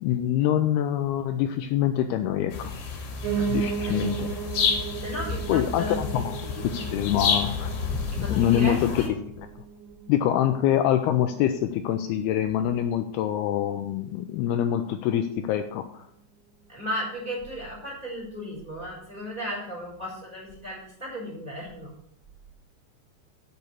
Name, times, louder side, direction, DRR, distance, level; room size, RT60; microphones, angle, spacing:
voice 1, 0.0-2.8 3.5-4.3 5.5-7.7 8.2-9.0 10.1-16.1, left 11 dB, 85° left, 8 dB, 2.2 m, -25 dB
sound 1, 2.5-9.1, left 5 dB, 65° left, 3.9 m, -30 dB
Piano, 3.2-12.3 12.7-13.9 14.2-14.3 14.5-14.6 14.8-14.9 15.5-15.6, right 7 dB, 80° right, 4.5 m, -35 dB
voice 2, 3.8-4.1 4.6-4.7 5.0-6.0 8.1-9.1 16.7-21.9, equal, 10° right, -5 dB, 4.7 m, -35 dB
8.5 x 6.9 x 8.0 m, 0.71 s
omnidirectional pair, 5.2 m